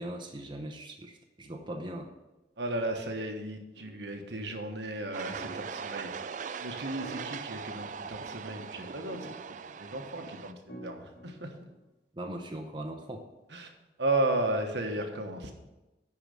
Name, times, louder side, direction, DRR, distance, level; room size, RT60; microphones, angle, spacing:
voice 1, 0.0-2.1 12.1-13.3, right 1 dB, 25° right, 2 dB, 0.8 m, -39 dB
voice 2, 2.6-6.3 6.6-9.5 9.8-11.5 13.5-13.7 14.0-15.5, right 2 dB, 70° right, 4 dB, 1.3 m, -34 dB
sound 1, 3.7-4.3 5.4-6.4 7.0-8.4 9.1-10.1 10.7-11.8, right 1 dB, 65° left, 2.9 m, -50 dB
sound 2, 5.1-10.5, right 6 dB, 45° right, 0.4 m, -40 dB
10.5 x 4.8 x 6.3 m, 1.0 s
head